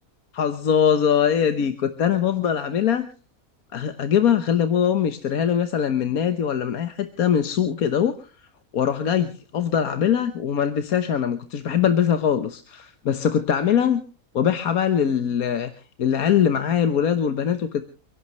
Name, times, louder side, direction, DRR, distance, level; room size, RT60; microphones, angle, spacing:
voice 1, 0.3-3.0 3.7-8.2 8.7-14.0 14.3-15.7 16.0-17.8, left 8 dB, 80° left, 9 dB, 1.6 m, -22 dB
29.0 x 11.5 x 3.1 m, 0.37 s
omnidirectional pair, 1.5 m